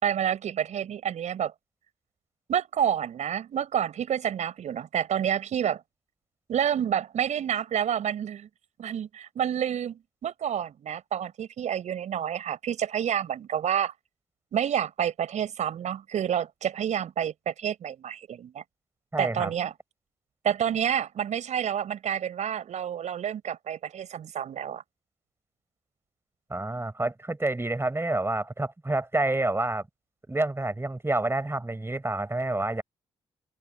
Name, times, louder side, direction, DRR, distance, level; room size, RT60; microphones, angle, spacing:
voice 1, 0.0-1.5 2.5-5.8 6.5-8.5 8.8-13.9 14.5-18.6 19.2-19.7 20.4-24.8, right 9 dB, 65° right, 5.3 m, -29 dB
voice 2, 19.1-19.5 26.5-29.8 30.3-32.8, right 2 dB, 20° right, 4.9 m, -28 dB
open air
hypercardioid pair, 45°, 13 cm